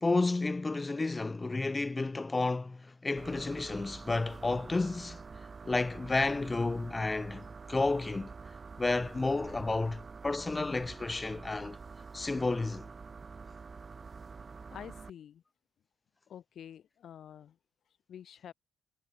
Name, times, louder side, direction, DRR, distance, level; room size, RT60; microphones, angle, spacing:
voice 1, 0.0-5.2 5.7-8.3 8.8-11.8 12.1-12.9, left 3 dB, 20° left, 0.7 m, -31 dB
sound 1, 3.2-15.1, right 4 dB, 35° right, 4.8 m, -47 dB
voice 2, 14.7-15.4 16.3-17.6 18.1-18.5, left 9 dB, 65° left, 4.9 m, -48 dB
cardioid pair, 90°, 0 cm